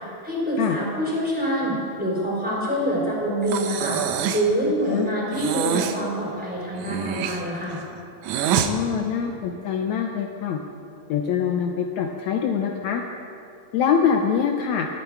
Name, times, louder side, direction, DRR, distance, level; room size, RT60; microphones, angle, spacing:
voice 1, 0.2-4.0 4.3-7.8, equal, 5° right, -5 dB, 3.1 m, -25 dB
Breathing, 3.5-4.5 5.3-6.0 6.8-8.7, right 9 dB, 85° right, 1.6 m, -26 dB
voice 2, 8.6-10.6 11.1-13.0 13.7-14.9, left 7 dB, 85° left, 3 dB, 1.6 m, -24 dB
23.0 x 8.9 x 4.7 m, 2.7 s
omnidirectional pair, 4.2 m